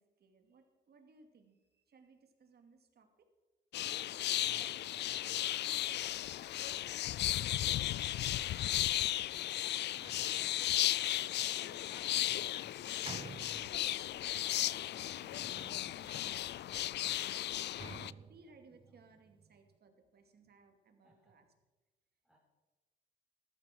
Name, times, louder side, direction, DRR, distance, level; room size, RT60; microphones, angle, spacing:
voice 1, 0.0-3.3 9.6-13.5 13.8-17.8 18.0-21.4, right 4 dB, 55° right, 5 dB, 2.6 m, -64 dB
sound 1, 3.7-18.1, left 13 dB, 60° left, 0.4 m, -35 dB
voice 2, 4.4-7.1 7.6-8.7 17.9-18.3 18.7-19.0 21.0-21.3 22.2-22.4, right 1 dB, ahead, -5 dB, 4.3 m, -67 dB
Sliding door, 9.8-14.3 14.9-19.8, right 5 dB, 25° right, 0.5 m, -54 dB
14.5 x 12.5 x 6.1 m, 1.2 s
cardioid pair, 90°, 20 cm